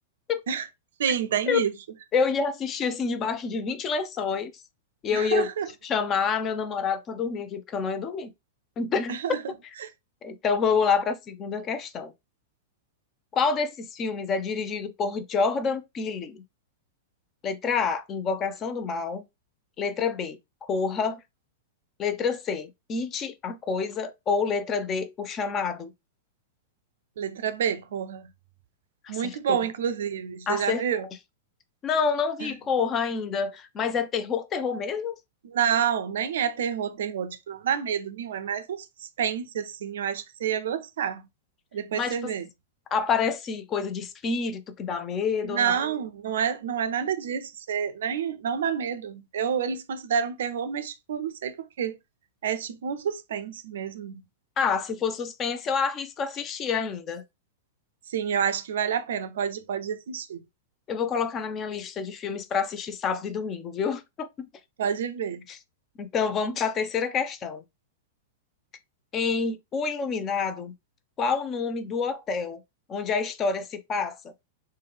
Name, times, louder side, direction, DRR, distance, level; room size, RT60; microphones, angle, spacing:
voice 1, 1.0-1.7 5.1-5.7 9.1-9.4 27.2-28.3 29.1-31.0 32.4-32.5 35.5-38.9 39.2-41.2 41.7-42.4 45.4-52.0 52.4-54.2 58.1-60.4 64.8-65.4, right 8 dB, 65° right, 0.4 m, -28 dB
voice 2, 2.1-4.5 5.0-5.5 5.8-8.3 8.8-9.2 10.2-12.1 13.3-16.4 17.4-19.2 19.8-20.4 20.7-21.2 22.0-25.9 29.0-29.7 30.5-30.8 31.8-35.1 41.9-42.3 42.9-45.8 54.6-57.2 60.9-64.5 65.5-65.6 66.0-67.6 69.1-70.7 71.2-72.6 72.9-74.2, left 5 dB, 30° left, 0.5 m, -28 dB
3.2 x 2.2 x 3.4 m
figure-of-eight pair, 100°, 0 cm